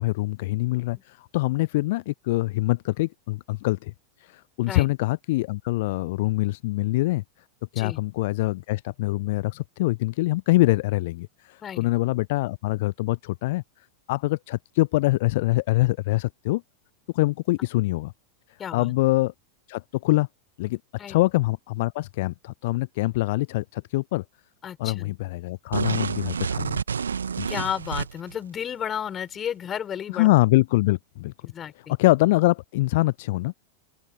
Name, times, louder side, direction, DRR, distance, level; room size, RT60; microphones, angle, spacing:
voice 1, 0.0-3.9 4.2-7.2 7.7-13.6 14.1-16.6 17.1-18.1 18.7-19.3 19.7-20.3 20.6-20.8 21.1-24.2 24.8-26.8 27.4-27.5 30.1-31.3 32.0-33.5, left 19 dB, 50° left, 0.4 m, -24 dB
voice 2, 18.6-18.9 21.0-21.2 24.6-25.2 27.5-30.3 31.4-31.9, left 9 dB, 25° left, 4.8 m, -32 dB
sound 1, 25.7-28.4, right 6 dB, 70° right, 1.9 m, -28 dB
open air
figure-of-eight pair, 90°, 0 cm